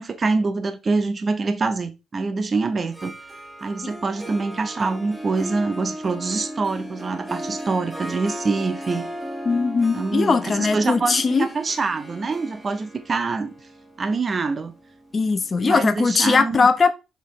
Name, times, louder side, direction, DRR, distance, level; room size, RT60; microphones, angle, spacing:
voice 1, 0.0-3.1 3.6-9.1 9.9-13.5 14.0-14.7 15.6-16.7, right 3 dB, 35° right, 0.8 m, -25 dB
Harp, 2.8-15.7, equal, 15° right, 1.5 m, -36 dB
voice 2, 9.4-11.5 15.1-16.9, left 4 dB, 35° left, 1.0 m, -20 dB
6.4 x 5.3 x 3.2 m
cardioid pair, 90°, 0 cm